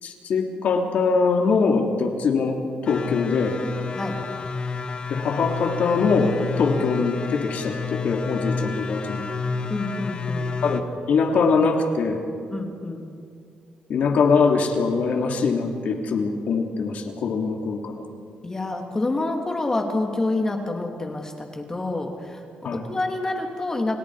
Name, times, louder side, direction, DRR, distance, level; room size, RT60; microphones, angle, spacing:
voice 1, 0.0-2.6 2.8-3.6 5.1-9.3 10.6-12.2 13.9-18.0 22.6-22.8, left 4 dB, 60° left, 2 dB, 3.0 m, -22 dB
sound 1, 2.9-10.8, left 4 dB, 40° left, 1.7 m, -30 dB
voice 2, 9.7-10.6 12.5-13.1 18.4-24.0, left 2 dB, 20° left, 2 dB, 2.6 m, -28 dB
30.0 x 29.5 x 4.9 m, 2.3 s
cardioid pair, 130°, 3 cm